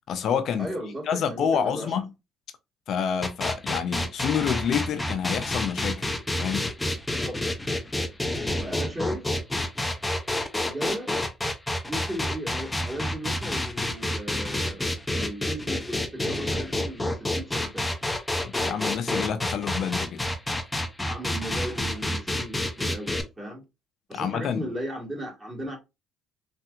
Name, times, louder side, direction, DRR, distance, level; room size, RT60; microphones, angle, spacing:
voice 1, 0.1-0.7 1.1-2.1 2.9-6.1 6.4-6.7 18.4-20.2 24.1-24.7, left 7 dB, 60° left, 0.6 m, -28 dB
voice 2, 0.6-2.0 7.1-7.4 8.6-9.3 10.6-11.1 11.8-17.9 21.0-23.6 24.1-25.8, right 1 dB, 15° right, 1.6 m, -36 dB
sound 1, 3.2-23.2, left 1 dB, 10° left, 0.7 m, -29 dB
3.4 x 2.7 x 2.4 m
supercardioid pair, 85°, 0 cm